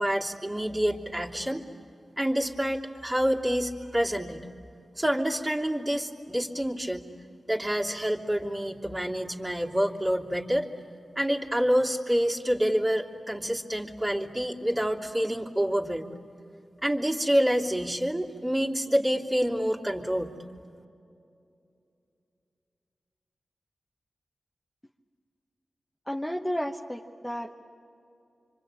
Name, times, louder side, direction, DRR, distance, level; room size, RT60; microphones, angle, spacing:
voice 1, 0.0-1.7 2.2-4.4 5.0-7.1 7.5-10.7 11.1-16.2 16.8-20.3, equal, 20° right, -2 dB, 3.0 m, -27 dB
voice 2, 26.1-27.5, equal, 10° left, 1 dB, 1.3 m, -32 dB
26.0 x 25.5 x 9.0 m, 2.6 s
cardioid pair, 45°, 0 cm